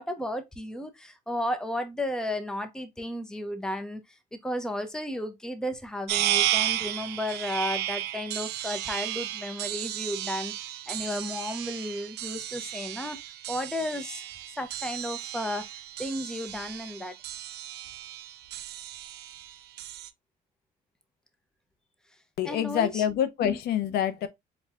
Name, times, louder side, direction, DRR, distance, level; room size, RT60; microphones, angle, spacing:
voice 1, 0.0-4.0 4.4-13.2 13.5-14.2 14.6-17.1 22.4-23.0 23.4-23.6, left 1 dB, 5° left, 0.7 m, -33 dB
sound 1, 6.1-20.1, right 13 dB, 80° right, 0.5 m, -33 dB
voice 2, 22.4-24.3, left 9 dB, 70° left, 0.6 m, -26 dB
4.5 x 2.3 x 3.4 m
cardioid pair, 110°, 17 cm